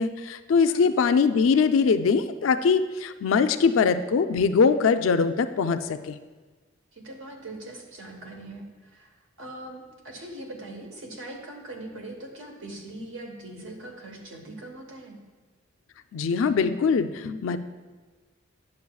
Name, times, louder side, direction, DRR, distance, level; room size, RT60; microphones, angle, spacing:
voice 1, 0.0-6.2 16.1-17.6, left 5 dB, 75° left, 10 dB, 0.4 m, -22 dB
voice 2, 6.9-15.2, right 2 dB, 90° right, 2 dB, 1.2 m, -41 dB
9.6 x 6.7 x 2.3 m, 1.3 s
head